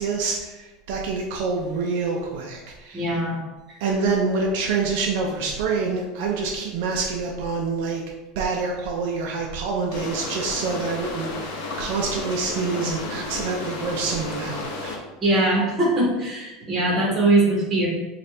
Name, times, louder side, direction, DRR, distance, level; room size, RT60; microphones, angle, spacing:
voice 1, 0.0-3.2 3.8-8.0 8.4-15.0, right 4 dB, 65° right, 0 dB, 0.5 m, -26 dB
voice 2, 2.9-3.4 3.7-3.8 15.2-17.9, right 2 dB, 20° right, -4 dB, 1.3 m, -21 dB
sound 1, 9.9-15.0, left 3 dB, 70° left, 0.7 m, -32 dB
4.2 x 2.5 x 3.2 m, 1.1 s
supercardioid pair, 155°, 0 cm